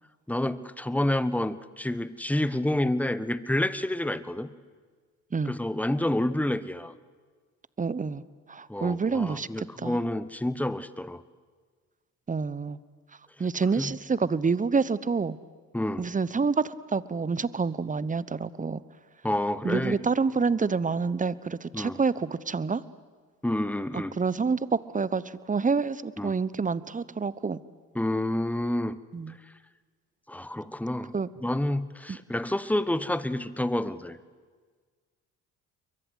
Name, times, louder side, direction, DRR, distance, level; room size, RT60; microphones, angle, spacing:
voice 1, 0.3-4.5 5.4-6.9 8.7-11.2 13.8-13.9 15.7-16.0 19.2-20.0 21.7-22.0 23.4-24.2 26.2-26.4 27.9-29.0 30.3-31.1 31.4-34.2, left 1 dB, 5° left, 14 dB, 1.3 m, -28 dB
voice 2, 7.8-8.2 8.5-10.0 12.3-12.8 13.4-15.4 16.0-18.8 19.6-22.8 23.9-24.6 24.9-27.6 29.1-29.4 31.1-31.3 32.1-32.2, right 5 dB, 20° right, 18 dB, 1.0 m, -28 dB
29.0 x 23.0 x 8.1 m, 1.5 s
hypercardioid pair, 55°, 39 cm